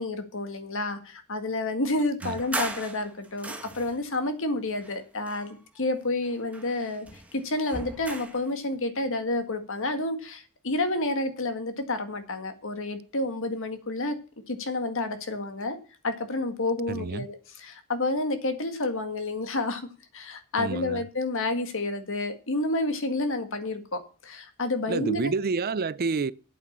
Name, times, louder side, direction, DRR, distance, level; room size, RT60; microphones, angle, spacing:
voice 1, 0.0-14.2 14.5-15.8 16.0-19.9 20.1-25.3, left 2 dB, 65° left, 1.9 m, -30 dB
sound 1, 2.2-4.1 4.8-5.9 6.2-8.5, right 2 dB, 5° right, 1.5 m, -38 dB
voice 2, 16.9-17.3 20.6-21.0 24.9-26.3, right 4 dB, 45° right, 0.5 m, -29 dB
8.6 x 8.4 x 7.2 m
head